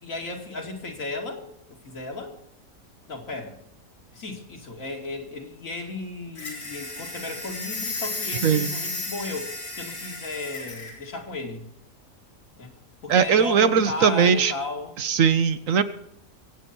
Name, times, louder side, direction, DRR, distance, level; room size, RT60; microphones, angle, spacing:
voice 1, 0.0-1.4 1.7-2.3 3.1-3.6 4.1-11.7 12.6-12.7 13.0-14.9, left 3 dB, 65° left, 1 dB, 2.7 m, -35 dB
sound 1, 6.3-11.0, left 2 dB, 80° left, 4.5 m, -33 dB
voice 2, 13.1-14.5 15.0-15.8, right 6 dB, 65° right, 11 dB, 1.2 m, -20 dB
24.5 x 8.4 x 4.4 m, 0.78 s
omnidirectional pair, 1.5 m